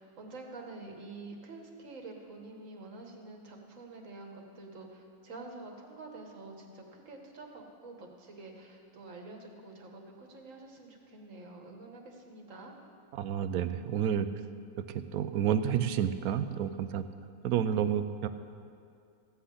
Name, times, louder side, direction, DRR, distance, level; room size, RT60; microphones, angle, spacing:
voice 1, 0.0-12.7, right 3 dB, 60° right, 2 dB, 1.7 m, -47 dB
voice 2, 13.1-14.3 14.8-17.0 17.4-18.3, right 9 dB, 80° right, 11 dB, 1.1 m, -30 dB
15.0 x 5.7 x 8.3 m, 2.4 s
omnidirectional pair, 1.5 m